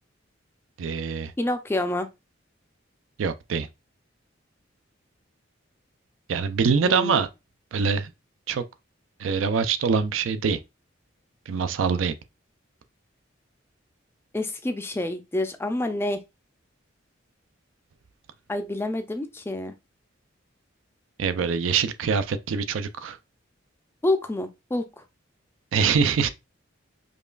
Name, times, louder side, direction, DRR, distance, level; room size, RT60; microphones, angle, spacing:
voice 1, 0.8-1.3 3.2-3.7 6.3-7.3 7.7-8.1 8.5-8.6 9.2-10.6 11.5-12.1 21.2-23.2 25.7-26.3, right 6 dB, 85° right, 0.4 m, -24 dB
voice 2, 1.4-2.1 6.8-7.2 14.3-16.2 18.5-19.7 24.0-25.0, left 1 dB, 10° left, 0.3 m, -28 dB
5.2 x 2.3 x 2.3 m
head